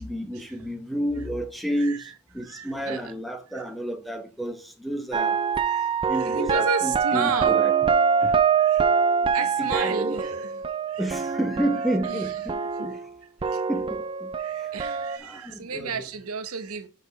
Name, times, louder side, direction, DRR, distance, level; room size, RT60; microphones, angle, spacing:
voice 1, 0.0-5.4 6.1-7.7 8.2-8.4 9.2-10.2 11.0-13.0 13.7-14.3 14.6-14.7 15.2-16.1, right 1 dB, ahead, 0.9 m, -31 dB
voice 2, 2.4-3.1 3.5-3.6 5.7-7.6 8.6-8.8 9.3-10.6 10.9-11.1 12.0-12.3 13.4-13.6 14.4-16.9, right 5 dB, 80° right, 0.9 m, -32 dB
sound 1, 5.1-13.1 13.4-15.2, right 6 dB, 25° right, 0.3 m, -24 dB
5.8 x 4.1 x 5.3 m
head